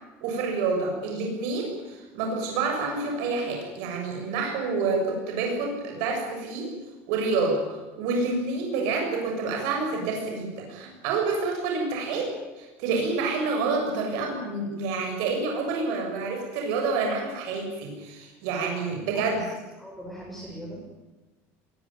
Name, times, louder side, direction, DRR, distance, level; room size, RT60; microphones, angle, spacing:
voice 1, 0.2-6.7 7.1-12.3 12.6-19.5, right 4 dB, 65° right, 1 dB, 7.2 m, -28 dB
voice 2, 19.1-19.4 19.8-20.9, equal, ahead, -5 dB, 6.8 m, -41 dB
21.5 x 19.5 x 9.3 m, 1.2 s
cardioid pair, 165°, 6 cm